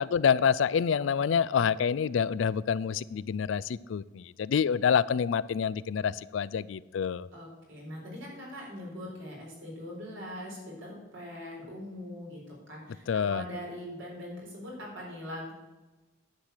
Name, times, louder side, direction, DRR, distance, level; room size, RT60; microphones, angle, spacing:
voice 1, 0.0-7.3 13.1-13.4, left 7 dB, 70° left, 19 dB, 0.4 m, -27 dB
voice 2, 7.3-15.5, equal, 75° right, -2 dB, 4.4 m, -42 dB
10.5 x 7.7 x 6.5 m, 1.2 s
head